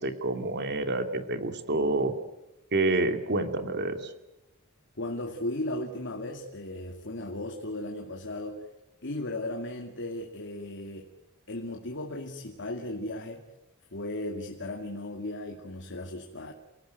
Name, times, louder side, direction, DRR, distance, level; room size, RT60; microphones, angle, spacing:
voice 1, 0.0-2.1 2.7-4.1, right 2 dB, 50° right, 8 dB, 2.7 m, -28 dB
voice 2, 5.0-8.7 9.0-11.1 11.5-13.4 13.9-16.5, left 1 dB, 55° left, 3 dB, 2.6 m, -36 dB
29.0 x 18.0 x 9.3 m, 0.96 s
head